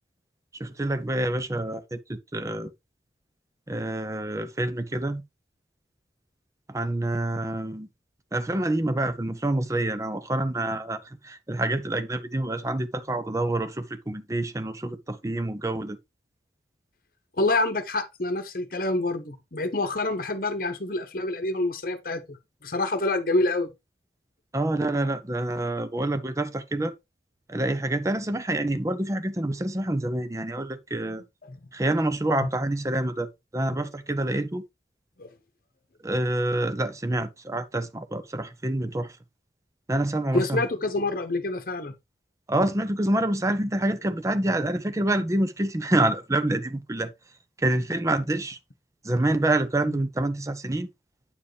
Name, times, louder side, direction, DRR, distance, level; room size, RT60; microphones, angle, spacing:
voice 1, 0.6-2.7 3.7-5.2 6.7-7.9 8.3-16.0 24.5-26.9 27.5-31.2 31.7-34.6 36.0-39.1 39.9-40.6 42.5-47.1 47.6-48.6 49.0-50.9, right 1 dB, 20° right, 0.6 m, -27 dB
voice 2, 17.4-22.4 22.6-23.7 31.0-31.2 31.4-31.7 32.4-32.5 35.2-35.3 40.3-41.9, left 2 dB, 55° left, 1.0 m, -27 dB
8.7 x 4.7 x 3.2 m
head